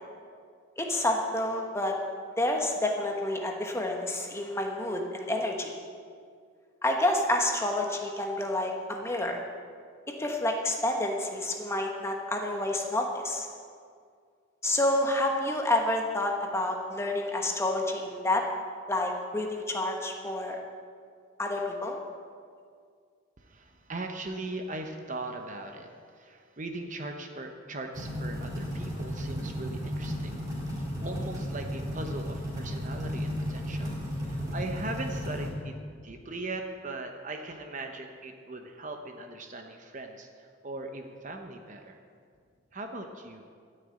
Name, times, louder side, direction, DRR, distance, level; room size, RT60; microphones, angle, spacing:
voice 1, 0.8-1.9 2.4-5.7 6.8-9.4 10.2-13.5 14.6-18.4 18.9-20.6 21.4-22.0, left 1 dB, 15° left, 2 dB, 1.1 m, -29 dB
voice 2, 23.4-30.4 30.8-42.0 42.7-43.5, right 2 dB, 35° right, 4 dB, 0.9 m, -39 dB
sound 1, 27.9-35.5, equal, 20° right, 4.1 m, -34 dB
13.0 x 6.7 x 8.9 m, 2.1 s
head